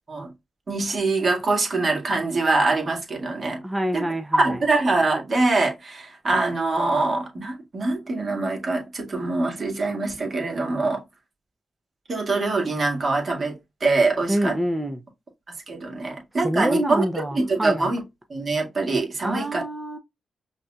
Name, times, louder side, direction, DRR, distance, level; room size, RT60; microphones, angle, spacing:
voice 1, 0.7-3.6 3.9-4.0 4.4-11.0 12.1-13.5 13.8-14.6 15.7-17.0 17.3-18.0 18.3-19.6, right 3 dB, 45° right, 1.9 m, -24 dB
voice 2, 3.6-4.6 14.3-15.0 16.4-17.9 19.2-20.0, right 1 dB, 10° right, 0.7 m, -26 dB
5.3 x 2.8 x 2.3 m
supercardioid pair, 55°, 0 cm